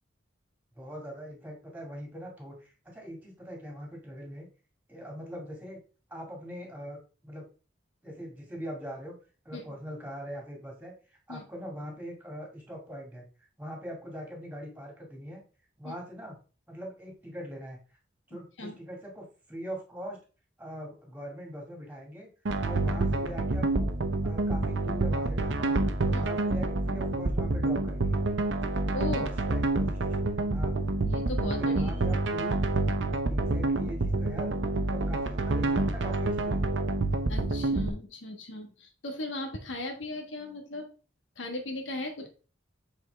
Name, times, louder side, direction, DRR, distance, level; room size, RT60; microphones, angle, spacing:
voice 1, 0.8-4.5 4.9-5.8 6.1-7.5 8.0-9.2 9.5-13.3 13.6-15.4 15.8-16.4 16.7-17.8 18.3-20.2 20.6-22.3 22.6-23.9 24.2-25.7 26.1-28.2 29.1-30.8 31.4-32.6 33.3-34.5 34.9-36.8, equal, 10° right, 0 dB, 2.0 m, -42 dB
sound 1, 22.5-37.9, right 2 dB, 75° right, 0.8 m, -28 dB
voice 2, 28.9-29.3 31.0-32.2 37.3-40.9 41.3-42.3, left 2 dB, 85° left, 3 dB, 1.3 m, -37 dB
7.7 x 4.4 x 3.4 m, 0.35 s
head